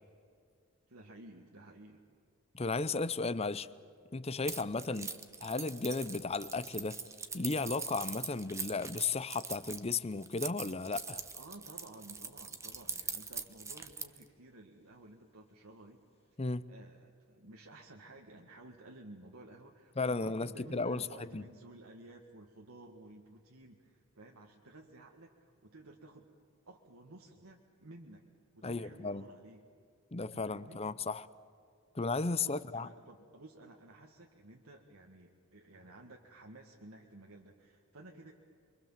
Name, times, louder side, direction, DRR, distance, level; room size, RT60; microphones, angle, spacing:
voice 1, 0.9-2.0 3.5-3.6 4.8-5.1 11.1-16.4 16.7-26.3 26.7-28.2 28.5-29.7 30.2-30.8 32.4-38.3, right 2 dB, 85° right, 1 dB, 1.8 m, -54 dB
voice 2, 2.5-3.7 4.1-5.1 5.4-7.0 7.3-11.2 16.4-16.6 20.0-21.4 28.6-29.2 30.1-31.3 31.9-32.9, left 3 dB, 30° left, 16 dB, 0.7 m, -34 dB
Keys jangling, 4.5-14.2, right 5 dB, 15° right, 1.1 m, -42 dB
28.5 x 24.0 x 7.4 m, 2.3 s
head